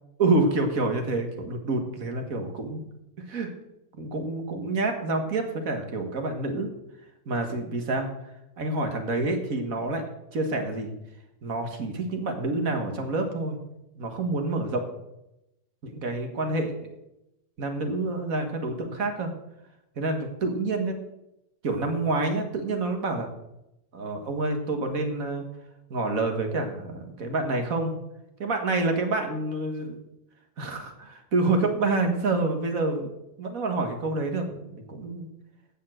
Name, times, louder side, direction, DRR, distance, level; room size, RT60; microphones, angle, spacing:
voice 1, 0.2-2.8 3.3-3.5 4.0-6.7 7.3-8.1 8.6-10.9 11.4-13.6 13.9-14.9 15.8-16.7 17.6-19.3 20.0-21.0 21.6-23.3 23.9-25.4 25.9-28.0 28.4-30.0 30.6-33.1 33.4-35.3, right 2 dB, 50° right, 5 dB, 1.9 m, -28 dB
15.5 x 5.7 x 6.3 m, 0.89 s
omnidirectional pair, 1.9 m